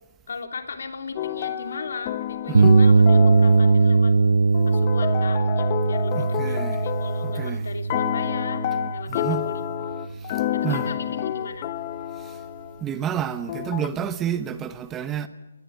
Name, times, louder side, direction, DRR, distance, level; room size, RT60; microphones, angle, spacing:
voice 1, 0.3-4.1 4.6-8.6 8.9-10.0 10.5-11.7, left 4 dB, 65° left, 3.2 m, -37 dB
sound 1, 1.2-4.1 4.5-7.5 7.9-12.8 13.5-13.9, left 13 dB, 35° left, 1.2 m, -29 dB
voice 2, 2.5-2.8 6.1-6.9 7.2-7.7 9.1-9.5 10.1-10.9 12.2-12.4 12.8-15.3, right 9 dB, 15° right, 1.1 m, -30 dB
sound 2, 2.5-10.3, right 4 dB, 80° right, 0.8 m, -20 dB
22.0 x 20.5 x 8.1 m
hypercardioid pair, 150°, 0 cm